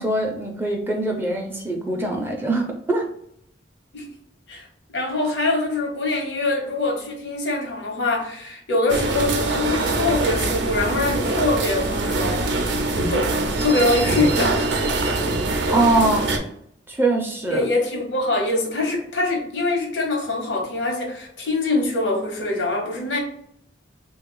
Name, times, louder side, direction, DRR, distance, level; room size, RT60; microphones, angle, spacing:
voice 1, 0.0-3.1 15.7-16.3 16.9-17.7, right 2 dB, 10° right, 1 dB, 0.4 m, -22 dB
voice 2, 4.9-12.8 13.1-13.3 13.6-14.7 17.5-23.2, left 2 dB, 90° left, 2 dB, 1.0 m, -24 dB
sound 1, 8.9-16.4, right 2 dB, 75° right, 0.5 m, -23 dB
3.2 x 2.3 x 3.7 m, 0.69 s
head